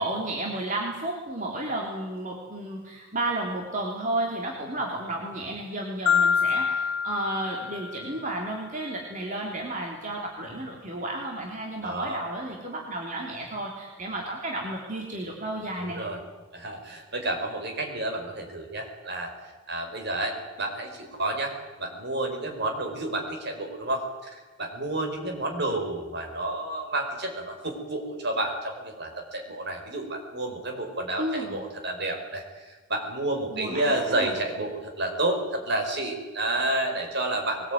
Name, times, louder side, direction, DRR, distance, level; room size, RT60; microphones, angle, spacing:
voice 1, 0.0-16.0 31.2-31.6 33.5-34.3, right 1 dB, 40° right, -1 dB, 3.3 m, -32 dB
Marimba xylophone, 6.1-8.3, left 6 dB, 55° left, 2.1 m, -26 dB
voice 2, 11.8-12.2 15.8-16.2 16.5-19.3 19.7-21.5 21.8-37.7, right 1 dB, 55° right, 3 dB, 5.0 m, -30 dB
22.0 x 20.5 x 9.5 m, 1.3 s
head